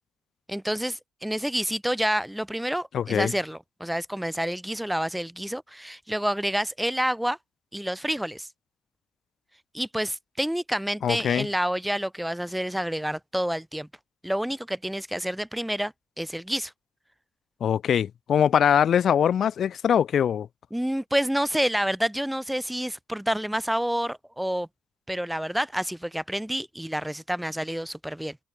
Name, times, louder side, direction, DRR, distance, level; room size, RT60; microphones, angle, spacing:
voice 1, 0.5-7.4 7.7-8.5 9.7-13.9 14.2-16.7 20.7-24.7 25.1-28.4, equal, 5° right, 2.2 m, -28 dB
voice 2, 2.9-3.3 11.0-11.5 17.6-20.5, left 8 dB, 60° left, 2.2 m, -22 dB
cardioid pair, 90°, 0 cm